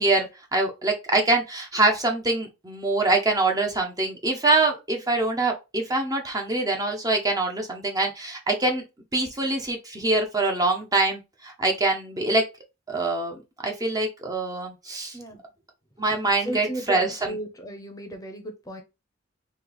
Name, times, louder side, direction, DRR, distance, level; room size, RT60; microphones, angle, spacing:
voice 1, 0.0-8.8 9.1-12.4 12.9-15.2 16.0-17.4, right 2 dB, 20° right, 0.7 m, -24 dB
voice 2, 16.4-18.8, right 1 dB, 20° left, 0.7 m, -35 dB
3.2 x 2.8 x 3.9 m
head